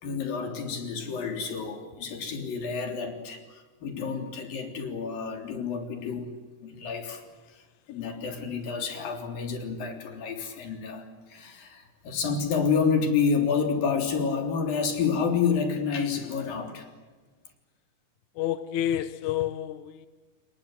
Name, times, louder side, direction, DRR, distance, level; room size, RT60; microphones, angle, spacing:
voice 1, 0.0-6.3 6.6-16.9, left 5 dB, 85° left, 5.2 m, -29 dB
voice 2, 18.4-20.1, left 11 dB, 65° left, 2.4 m, -29 dB
28.5 x 22.5 x 7.8 m
omnidirectional pair, 3.9 m